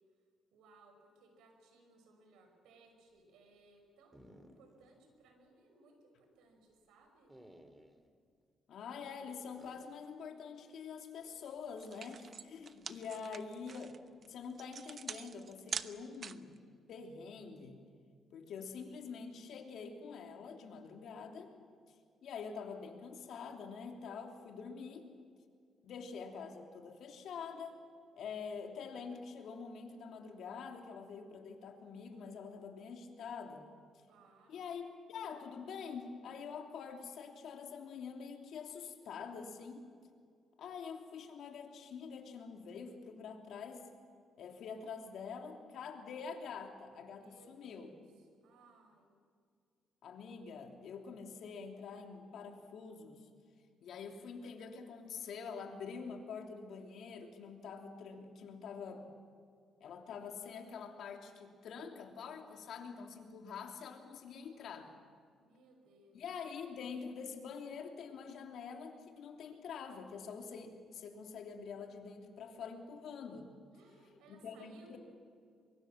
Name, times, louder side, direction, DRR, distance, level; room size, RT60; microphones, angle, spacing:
voice 1, 0.5-7.3 13.2-13.6 34.1-34.6 47.1-48.0 48.4-49.2 65.4-66.2 73.7-75.0, right 3 dB, 90° right, 5 dB, 5.8 m, -64 dB
sound 1, 4.1-4.9 5.3-5.4 7.3-8.1 9.6-10.1, equal, 10° right, 2.6 m, -59 dB
voice 2, 8.7-13.9 14.2-16.5 16.9-17.8 18.3-21.5 22.2-25.1 25.8-27.8 28.2-33.7 34.5-39.9 40.6-43.9 44.4-47.9 50.0-53.3 53.8-59.1 59.8-64.9 66.1-73.5 74.3-75.0, left 5 dB, 70° left, 3 dB, 3.1 m, -46 dB
sound 2, 11.4-11.5 11.8-16.6, right 6 dB, 50° right, 0.9 m, -44 dB
23.5 x 23.0 x 7.5 m, 2.1 s
cardioid pair, 90°, 0 cm